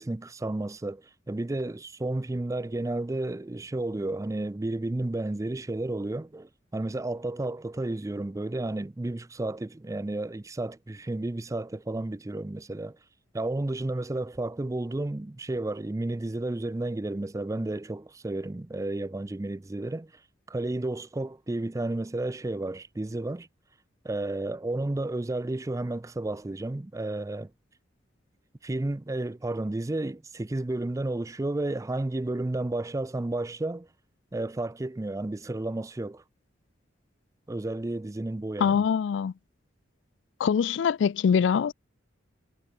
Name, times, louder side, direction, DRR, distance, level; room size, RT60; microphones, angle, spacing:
voice 1, 0.0-13.0 13.3-20.1 20.5-23.5 24.0-27.5 28.6-33.9 34.3-36.2 37.5-38.8, right 2 dB, 15° right, 0.4 m, -32 dB
voice 2, 38.6-39.3 40.4-41.7, left 7 dB, 70° left, 0.3 m, -23 dB
head